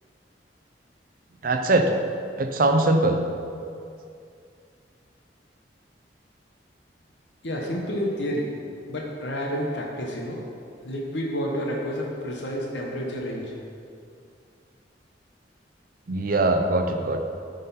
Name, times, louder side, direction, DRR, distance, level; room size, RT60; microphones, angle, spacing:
voice 1, 1.4-1.9 2.4-3.2 16.1-17.2, right 2 dB, 50° right, 5 dB, 0.5 m, -21 dB
voice 2, 7.4-8.5 8.9-10.4 10.8-13.5, equal, 80° left, -2 dB, 0.9 m, -29 dB
9.4 x 4.0 x 4.1 m, 2.4 s
head